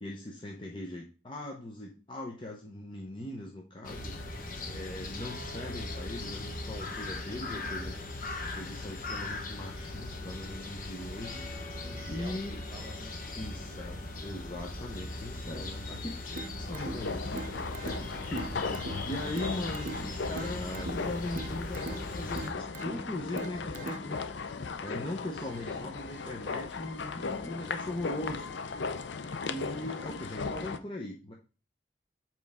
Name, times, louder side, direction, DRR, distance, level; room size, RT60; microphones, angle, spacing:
voice 1, 0.0-4.2 4.7-7.9 8.4-11.8 12.1-12.6 13.4-17.6 18.2-18.5 19.0-24.2 24.8-28.5 29.5-31.3, left 1 dB, 25° left, 0 dB, 0.7 m, -40 dB
sound 1, 3.8-22.5, left 2 dB, 50° left, 1.1 m, -39 dB
voice 2, 7.3-7.8 11.8-12.4 12.7-13.1 17.9-18.5 25.4-25.9, right 1 dB, 25° right, 3 dB, 1.6 m, -49 dB
sound 2, 16.4-24.4, right 3 dB, 45° right, 0.5 m, -43 dB
sound 3, 16.6-30.8, left 4 dB, 75° left, 0.5 m, -37 dB
7.7 x 4.5 x 3.5 m, 0.35 s
head